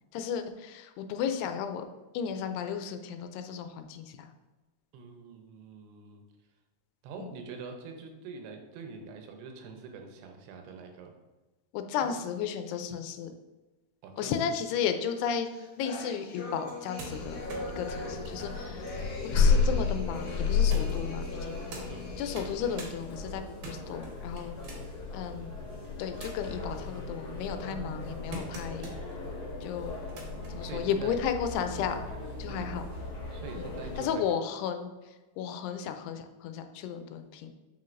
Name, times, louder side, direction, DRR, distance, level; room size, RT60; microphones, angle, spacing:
voice 1, 0.1-1.9 2.1-4.3 7.2-7.3 11.7-13.3 14.2-15.5 15.8-18.9 19.2-21.6 22.2-24.5 25.1-25.5 26.0-28.9 29.6-29.9 30.5-32.1 32.4-32.8 33.6-33.7 34.0-37.5, left 7 dB, 85° left, 7 dB, 2.6 m, -34 dB
voice 2, 4.9-6.2 7.0-11.1 12.0-12.2 14.0-14.3 21.9-22.1 30.6-31.2 32.5-32.6 33.3-34.2, right 5 dB, 80° right, 4 dB, 2.8 m, -44 dB
sound 1, 15.2-23.1, left 3 dB, 70° left, 1.6 m, -43 dB
sound 2, 16.6-19.9 20.7-21.9 22.2-22.9 23.3-25.0 25.6-26.6 27.1-29.2 29.9-30.5 31.6-31.7, right 3 dB, 65° right, 2.2 m, -46 dB
sound 3, 17.0-34.0, left 5 dB, 50° left, 1.6 m, -33 dB
7.5 x 5.7 x 2.5 m, 1.2 s
omnidirectional pair, 4.7 m